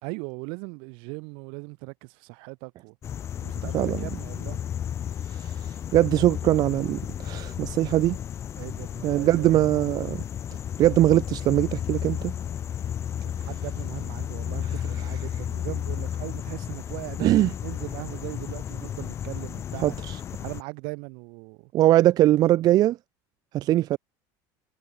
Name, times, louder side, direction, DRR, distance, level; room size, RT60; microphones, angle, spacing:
voice 1, 0.0-3.0 3.4-4.6 8.6-9.5 10.5-10.6 13.4-20.0 20.4-21.7, right 35 dB, 70° right, 3.3 m, -39 dB
sound 1, 3.0-20.6, left 9 dB, 30° left, 0.5 m, -33 dB
voice 2, 5.3-8.2 9.0-10.2 10.8-12.3 17.2-17.5 19.8-20.2 21.7-23.0 23.5-24.0, right 14 dB, 45° right, 0.7 m, -21 dB
cardioid pair, 140°, 9 cm